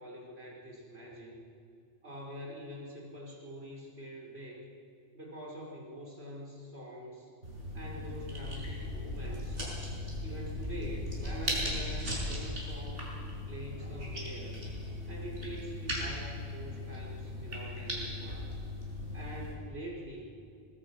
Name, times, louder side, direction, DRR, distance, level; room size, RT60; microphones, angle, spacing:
voice 1, 0.0-1.4 2.0-4.6 5.1-7.3 7.7-9.6 10.2-13.1 13.5-14.6 15.1-18.4 19.1-20.3, right 1 dB, 60° right, -3 dB, 5.6 m, -45 dB
sound 1, 7.4-19.5, left 1 dB, 85° right, 6.5 m, -38 dB
25.0 x 21.0 x 6.3 m, 2.5 s
omnidirectional pair, 1.2 m